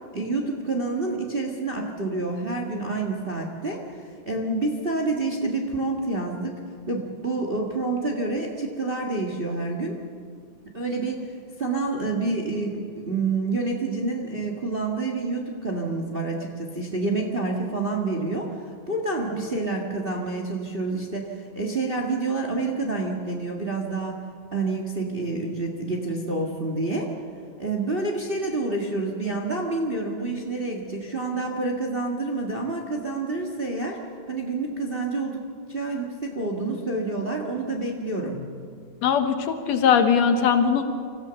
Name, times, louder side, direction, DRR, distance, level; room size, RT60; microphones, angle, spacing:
voice 1, 0.1-3.8 4.2-6.6 6.9-10.0 10.7-11.2 11.6-18.5 18.9-24.2 24.5-27.1 27.6-34.0 34.3-38.5, right 3 dB, 25° right, 1 dB, 1.3 m, -28 dB
voice 2, 39.0-39.4 39.7-40.8, left 7 dB, 65° left, 8 dB, 2.3 m, -19 dB
25.5 x 15.5 x 6.9 m, 2.2 s
omnidirectional pair, 3.4 m